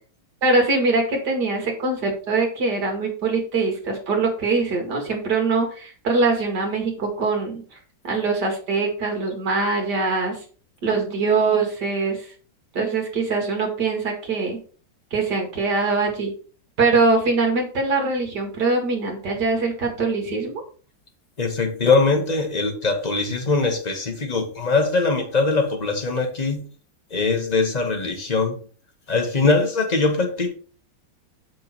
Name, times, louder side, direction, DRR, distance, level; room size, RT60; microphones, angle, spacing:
voice 1, 0.4-7.8 8.0-10.4 10.8-12.3 12.7-14.6 15.1-16.3 16.8-20.6, right 3 dB, 50° right, 2 dB, 2.6 m, -22 dB
voice 2, 21.4-26.7 27.1-28.6 29.1-30.5, left 3 dB, 25° left, 3 dB, 1.1 m, -22 dB
6.8 x 6.2 x 4.4 m, 0.40 s
omnidirectional pair, 2.3 m